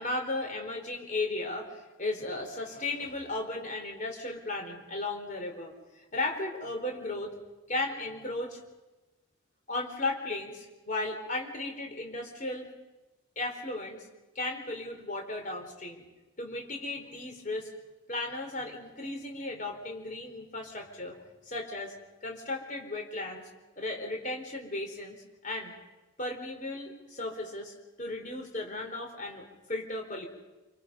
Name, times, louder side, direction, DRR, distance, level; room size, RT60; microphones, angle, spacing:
voice 1, 0.0-7.3 7.7-8.6 9.7-12.7 13.4-14.1 14.3-16.1 16.4-17.7 18.1-21.2 21.5-21.9 22.2-23.4 23.8-25.7 26.2-30.3, left 2 dB, 40° left, 3 dB, 4.2 m, -35 dB
27.5 x 25.5 x 5.4 m, 1.1 s
head